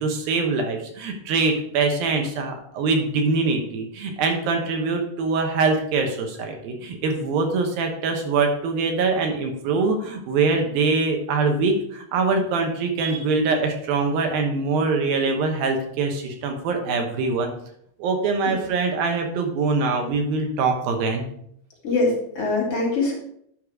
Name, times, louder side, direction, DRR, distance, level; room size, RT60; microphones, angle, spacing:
voice 1, 0.0-17.5 18.0-21.3, right 4 dB, 75° right, 3 dB, 2.9 m, -23 dB
voice 2, 21.8-23.1, left 3 dB, 45° left, -3 dB, 3.2 m, -23 dB
10.5 x 5.5 x 4.8 m, 0.69 s
omnidirectional pair, 4.3 m